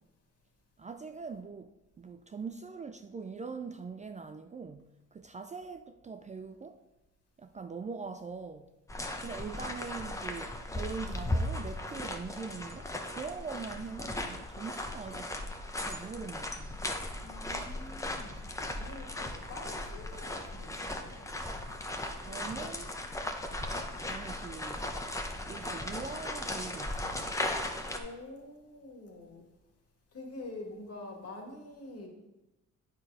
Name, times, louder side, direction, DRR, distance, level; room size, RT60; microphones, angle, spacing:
voice 1, 0.8-6.8 7.4-8.7 9.2-15.3 15.8-16.8 22.3-22.9 24.0-24.9 25.5-27.1, right 5 dB, 25° right, 0.4 m, -42 dB
sound 1, 8.9-28.0, left 1 dB, 10° left, 0.9 m, -37 dB
voice 2, 17.2-18.4 18.7-21.2 27.9-29.4 30.1-32.1, left 2 dB, 50° left, 2.0 m, -46 dB
8.9 x 4.5 x 4.8 m
cardioid pair, 90°, 30 cm